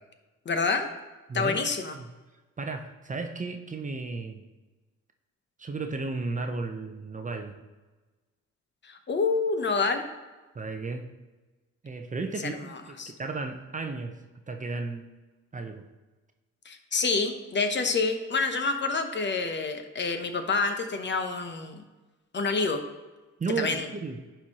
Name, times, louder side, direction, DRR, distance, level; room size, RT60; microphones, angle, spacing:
voice 1, 0.5-0.9 1.3-2.0 8.8-10.1 12.4-12.5 13.0-13.1 16.7-21.8 22.3-22.8 23.6-23.9, left 4 dB, 40° left, 7 dB, 0.8 m, -27 dB
voice 2, 1.3-1.6 1.9-2.1 2.6-4.5 5.6-7.6 10.5-11.1 11.8-14.2 14.5-15.1 15.5-15.8 23.4-24.2, right 3 dB, 25° right, 5 dB, 0.7 m, -34 dB
11.0 x 4.5 x 2.9 m, 1.2 s
cardioid pair, 90°, 30 cm